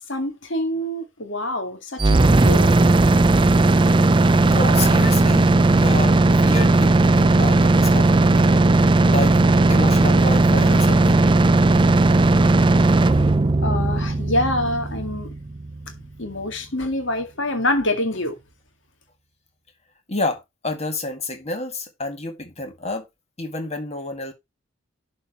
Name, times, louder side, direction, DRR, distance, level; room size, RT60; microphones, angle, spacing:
voice 1, 0.1-2.8 13.2-13.3 13.6-15.3 16.2-18.4, left 1 dB, 70° left, 2.0 m, -26 dB
sound 1, 2.0-15.9, right 2 dB, 25° right, 0.4 m, -16 dB
voice 2, 4.4-8.7 9.0-9.4 9.7-11.3 20.1-23.1 23.4-24.3, left 2 dB, 30° left, 2.0 m, -29 dB
11.5 x 4.5 x 4.3 m
head